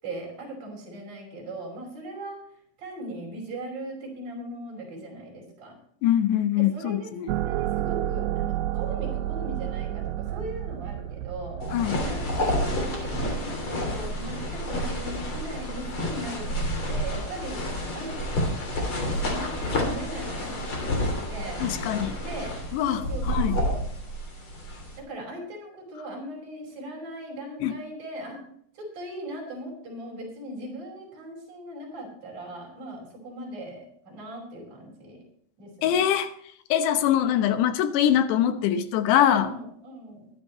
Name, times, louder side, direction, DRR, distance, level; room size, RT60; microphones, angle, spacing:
voice 1, 0.0-2.4 2.8-5.8 6.6-11.6 12.0-17.6 17.9-18.1 18.7-21.6 22.2-22.5 22.8-23.8 25.0-28.4 28.7-35.2 35.6-36.1 39.4-40.3, right 1 dB, 40° right, 0 dB, 6.4 m, -39 dB
voice 2, 6.0-7.3 11.7-12.0 21.6-22.2 22.7-23.0 23.3-23.6 27.6-27.7 35.8-36.3 36.7-39.5, left 10 dB, 90° left, 9 dB, 3.2 m, -23 dB
sound 1, 7.3-12.5, right 13 dB, 85° right, 2.7 m, -30 dB
sound 2, 11.6-25.0, equal, 35° left, 3.5 m, -29 dB
21.5 x 10.0 x 3.1 m, 0.64 s
omnidirectional pair, 4.8 m